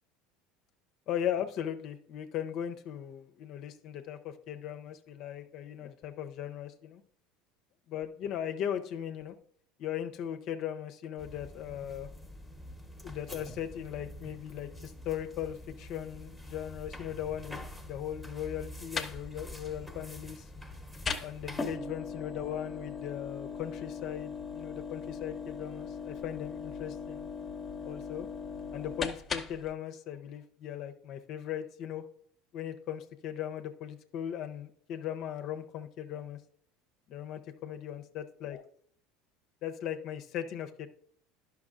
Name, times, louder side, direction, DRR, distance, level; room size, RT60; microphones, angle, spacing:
voice 1, 1.1-7.0 7.9-9.4 9.8-12.1 13.0-20.4 21.2-27.3 27.9-28.3 28.7-32.0 32.5-36.4 37.1-38.6 39.6-40.9, left 10 dB, 55° left, 7 dB, 0.6 m, -38 dB
sound 1, 11.2-21.8, left 1 dB, 5° right, 1.0 m, -46 dB
sound 2, 18.5-29.7, left 5 dB, 30° left, 0.8 m, -40 dB
10.5 x 5.8 x 2.5 m, 0.62 s
hypercardioid pair, 85°, 0 cm